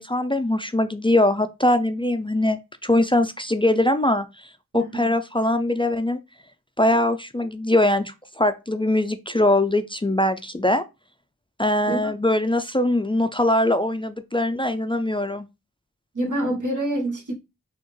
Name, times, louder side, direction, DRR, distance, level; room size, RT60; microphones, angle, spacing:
voice 1, 0.0-4.5 4.7-6.2 6.8-10.8 11.6-15.5, left 1 dB, 15° left, 0.3 m, -22 dB
voice 2, 4.7-5.1 11.9-12.0 16.1-17.3, right 1 dB, 70° right, 1.2 m, -26 dB
4.3 x 2.4 x 3.1 m
wide cardioid pair, 55°, 31 cm